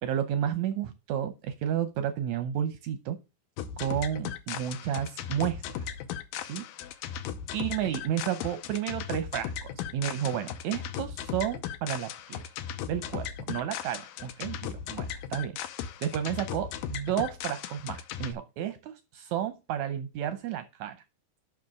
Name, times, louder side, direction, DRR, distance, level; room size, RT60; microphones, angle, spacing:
voice 1, 0.0-3.2 3.8-5.8 6.4-6.6 7.5-12.4 12.9-15.6 16.0-21.0, right 10 dB, 75° right, 11 dB, 1.7 m, -32 dB
sound 1, 3.6-18.3, left 9 dB, 80° left, 2.4 m, -37 dB
7.0 x 6.0 x 6.3 m, 0.28 s
omnidirectional pair, 4.1 m